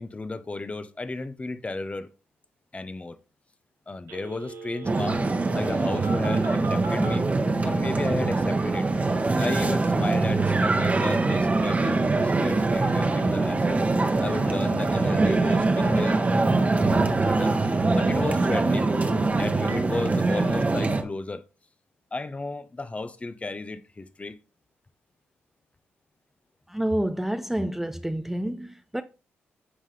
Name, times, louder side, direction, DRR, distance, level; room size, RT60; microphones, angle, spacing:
voice 1, 0.0-2.1 2.7-3.2 3.9-5.2 5.5-7.3 7.6-13.8 14.2-16.2 17.2-17.5 17.9-18.9 19.3-21.4 22.1-24.4, left 3 dB, 25° left, 0.8 m, -33 dB
Telephone, 4.1-7.2 11.6-19.8, right 4 dB, 80° right, 1.5 m, -43 dB
sound 1, 4.8-21.0, right 3 dB, 30° right, 1.2 m, -23 dB
voice 2, 26.7-29.0, right 1 dB, 5° right, 0.5 m, -28 dB
11.0 x 3.7 x 3.3 m
supercardioid pair, 55°, 5 cm